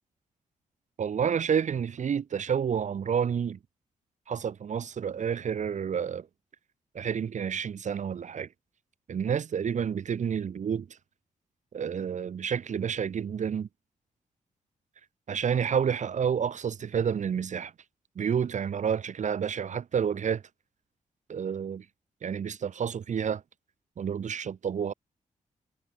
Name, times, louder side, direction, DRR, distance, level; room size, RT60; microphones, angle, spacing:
voice 1, 1.0-3.6 4.3-6.3 6.9-8.5 9.1-10.9 11.7-13.7 15.3-17.7 18.2-20.4 21.3-21.8 22.2-23.4 24.0-24.9, right 7 dB, 60° right, 1.2 m, -29 dB
cardioid pair, 70°, 14 cm